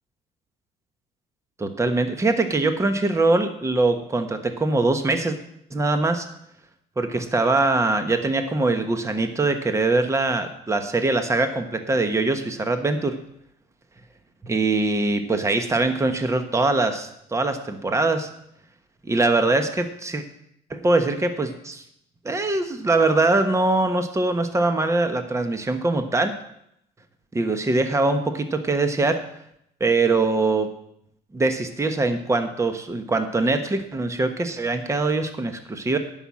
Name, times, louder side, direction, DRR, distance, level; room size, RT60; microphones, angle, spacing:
voice 1, 1.6-5.4 5.7-6.3 7.0-13.2 14.4-18.3 19.0-20.2 20.7-21.8 22.2-26.4 27.3-29.2 29.8-30.7 31.3-36.0, right 2 dB, 15° right, 7 dB, 1.2 m, -22 dB
11.0 x 5.8 x 8.5 m, 0.74 s
cardioid pair, 110°, 17 cm